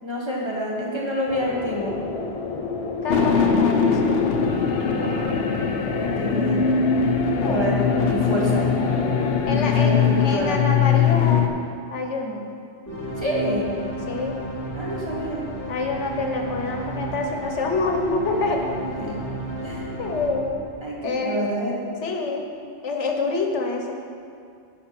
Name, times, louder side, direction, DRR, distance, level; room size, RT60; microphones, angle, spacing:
voice 1, 0.0-2.0 4.9-5.6 6.0-6.6 7.5-7.7 8.1-8.7 9.5-10.6 13.2-13.7 14.7-15.4 19.0-19.1 19.6-19.8 20.8-21.7, equal, 25° right, -4 dB, 1.5 m, -28 dB
sound 1, 1.3-9.4, left 4 dB, 40° left, 0.5 m, -30 dB
voice 2, 3.0-4.6 7.4-7.8 9.5-11.5 11.9-12.4 14.1-14.3 15.7-18.6 20.0-20.7 21.0-21.4 22.0-22.5 22.8-24.0, left 3 dB, 80° left, 2 dB, 1.3 m, -27 dB
sound 2, 3.1-11.5, left 6 dB, 60° left, 0.9 m, -21 dB
sound 3, 12.9-21.3, equal, 15° left, 2.3 m, -33 dB
10.5 x 5.0 x 5.9 m, 2.3 s
omnidirectional pair, 1.2 m